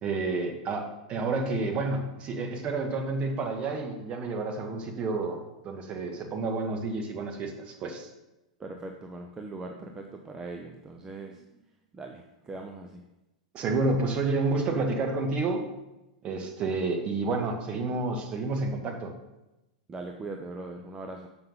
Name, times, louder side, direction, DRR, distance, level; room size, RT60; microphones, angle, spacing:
voice 1, 0.0-5.4 5.6-8.1 13.5-15.7 16.2-19.1, right 3 dB, 35° right, 4 dB, 1.5 m, -30 dB
voice 2, 8.6-11.5 11.9-13.0 19.9-21.3, right 2 dB, 20° right, 3 dB, 0.7 m, -40 dB
6.9 x 5.7 x 5.6 m, 0.96 s
hypercardioid pair, 100°, 4 cm